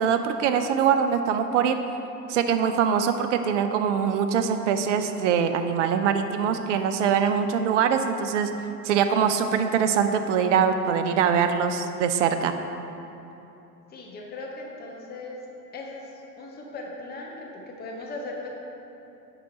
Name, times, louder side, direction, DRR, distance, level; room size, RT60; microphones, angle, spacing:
voice 1, 0.0-1.8 2.3-8.5 8.8-12.5, right 7 dB, 50° right, 8 dB, 0.6 m, -23 dB
voice 2, 13.9-15.4 15.7-16.0 16.4-18.5, left 2 dB, 20° left, -1 dB, 1.1 m, -38 dB
10.0 x 3.9 x 4.2 m, 3.0 s
figure-of-eight pair, 90°, 50 cm